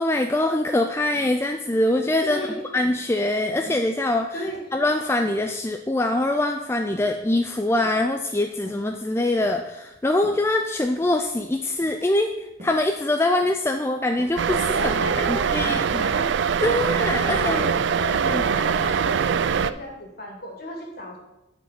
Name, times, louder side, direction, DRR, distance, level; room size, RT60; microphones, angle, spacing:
voice 1, 0.0-2.5 2.7-4.4 4.7-12.3 12.6-14.9 15.3-16.0 16.6-17.7 18.3-18.4, left 1 dB, 15° left, 4 dB, 0.3 m, -23 dB
sound 1, 1.1-1.6 2.0-2.3 2.7-3.0 3.6-4.2 4.4-4.7 5.3-5.6 6.0-6.3 6.9-7.2 7.8-8.2 8.6-8.9 9.3-10.6 11.0-11.3 11.8-12.1 12.5-12.9 13.4-13.7 14.1-14.6 14.9-15.2 15.6-15.9 16.5-16.8 17.2-17.5 18.1-18.4 18.7-19.9, equal, 35° right, 1.9 m, -44 dB
voice 2, 2.2-2.6 4.3-4.6 14.7-16.3 17.2-21.2, left 1 dB, 50° left, 0 dB, 2.3 m, -34 dB
sound 2, 14.4-19.7, right 6 dB, 65° right, 0.3 m, -23 dB
9.9 x 5.2 x 5.7 m, 0.96 s
head